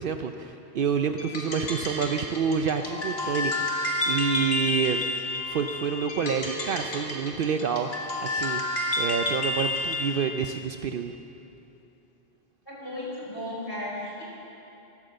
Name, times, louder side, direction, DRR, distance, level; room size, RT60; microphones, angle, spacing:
voice 1, 0.0-5.0 5.5-8.6 9.0-11.1, right 6 dB, 65° right, 7 dB, 0.7 m, -28 dB
sound 1, 1.2-10.2, left 2 dB, 75° left, 1.9 m, -30 dB
voice 2, 12.7-14.2, left 1 dB, 20° left, -6 dB, 4.8 m, -35 dB
14.5 x 12.0 x 7.6 m, 2.9 s
omnidirectional pair, 1.1 m